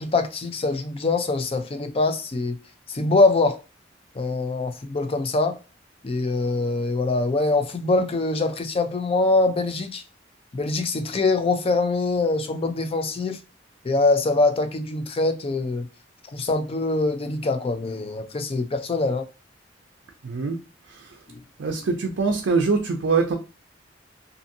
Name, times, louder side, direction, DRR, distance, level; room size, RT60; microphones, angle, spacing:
voice 1, 0.0-2.6 2.9-3.6 4.1-5.6 6.0-10.0 10.5-13.4 13.8-15.9 16.3-19.3 21.3-21.4, left 3 dB, 30° left, 0.4 m, -23 dB
voice 2, 20.2-20.6 20.9-21.2 21.6-23.3, right 4 dB, 75° right, 0.4 m, -23 dB
2.6 x 2.6 x 2.5 m
head